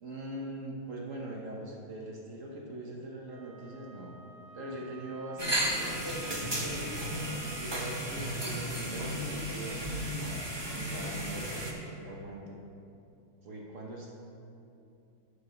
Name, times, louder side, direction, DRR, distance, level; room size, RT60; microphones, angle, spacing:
voice 1, 0.0-4.2 4.5-6.8 7.6-10.0 10.9-12.6 13.4-14.1, right 1 dB, 50° right, -2 dB, 1.0 m, -42 dB
Wind instrument woodwind instrument, 3.3-7.8, right 5 dB, 70° right, 1.5 m, -52 dB
sound 1, 5.4-11.7, equal, 30° right, 0.4 m, -34 dB
11.0 x 4.9 x 5.7 m, 2.7 s
omnidirectional pair, 2.3 m